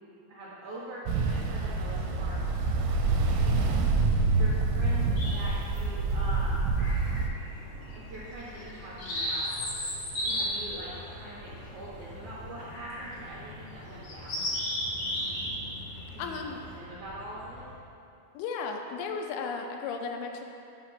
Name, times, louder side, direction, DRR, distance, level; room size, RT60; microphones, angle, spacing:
voice 1, 0.3-2.4 3.2-6.7 7.9-9.5 10.1-14.7 16.1-17.7, right 1 dB, 70° right, -9 dB, 2.0 m, -43 dB
Ocean, 1.1-7.3, right 3 dB, 85° right, 2.5 m, -27 dB
sound 1, 1.7-17.7, equal, 45° right, 1.4 m, -44 dB
sound 2, 5.2-5.7 6.8-7.4 7.8-8.0 8.6-12.0 12.7-13.2 13.5-13.6 14.0-15.6 15.9-16.1, equal, 60° left, 1.7 m, -34 dB
voice 2, 16.2-16.6 18.3-20.4, left 5 dB, 85° left, 4 dB, 2.4 m, -34 dB
7.4 x 2.9 x 5.9 m, 2.6 s
omnidirectional pair, 4.4 m